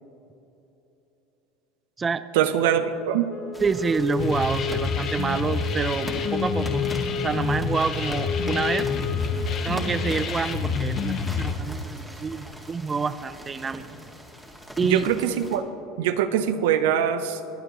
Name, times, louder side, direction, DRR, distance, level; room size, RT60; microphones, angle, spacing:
voice 1, 2.3-3.3 14.8-15.6 16.0-17.4, right 9 dB, 80° right, 10 dB, 0.6 m, -23 dB
Wind instrument woodwind instrument, 3.3-10.1, left 3 dB, 65° left, 1.4 m, -32 dB
sound 1, 3.5-15.6, equal, ahead, 1.9 m, -41 dB
voice 2, 3.6-6.9 7.2-8.9 9.6-13.9 14.8-15.0, right 5 dB, 25° right, 13 dB, 0.4 m, -27 dB
sound 2, 4.2-11.5, left 5 dB, 50° left, 0.9 m, -28 dB
22.5 x 8.9 x 3.0 m, 2.9 s
supercardioid pair, 100°, 0 cm